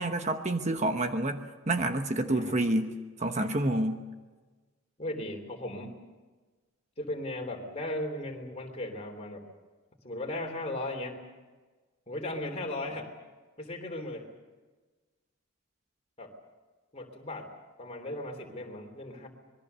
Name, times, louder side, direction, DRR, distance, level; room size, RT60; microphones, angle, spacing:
voice 1, 0.0-2.9 3.2-4.0, right 1 dB, 30° right, 6 dB, 1.1 m, -28 dB
voice 2, 5.0-6.0 7.0-9.4 10.0-11.2 12.1-13.1 13.6-14.3 16.2-16.3 16.9-17.5 17.8-19.3, left 1 dB, 30° left, 4 dB, 3.2 m, -37 dB
26.0 x 21.5 x 6.8 m, 1.3 s
head